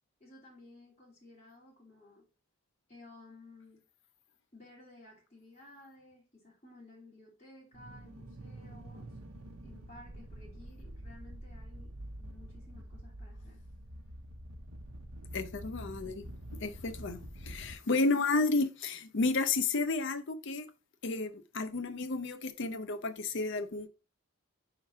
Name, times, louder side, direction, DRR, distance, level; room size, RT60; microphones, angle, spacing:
voice 1, 0.2-2.3 2.9-3.8 4.5-9.1 9.6-11.9 12.2-13.6, left 2 dB, 30° left, 2.2 m, -55 dB
sound 1, 7.7-17.7, right 1 dB, 85° right, 0.9 m, -46 dB
voice 2, 15.3-16.2 16.6-20.7 21.0-23.9, left 3 dB, 55° left, 0.6 m, -32 dB
4.4 x 3.9 x 5.6 m
head